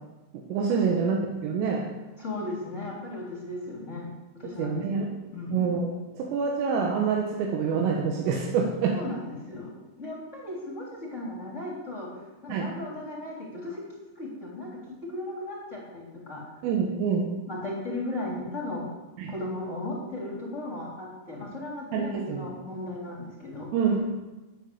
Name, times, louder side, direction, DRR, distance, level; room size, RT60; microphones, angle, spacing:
voice 1, 0.3-1.9 4.6-5.1 5.5-9.0 12.5-12.7 16.6-17.3 19.2-19.3 21.9-22.5 23.7-24.1, right 5 dB, 80° right, 0 dB, 3.9 m, -26 dB
voice 2, 2.2-4.1 4.3-5.7 8.9-9.7 10.0-12.1 12.4-16.4 17.5-18.9 19.2-23.7, left 2 dB, 20° left, -4 dB, 2.6 m, -36 dB
12.5 x 9.9 x 7.0 m, 1.1 s
omnidirectional pair, 5.8 m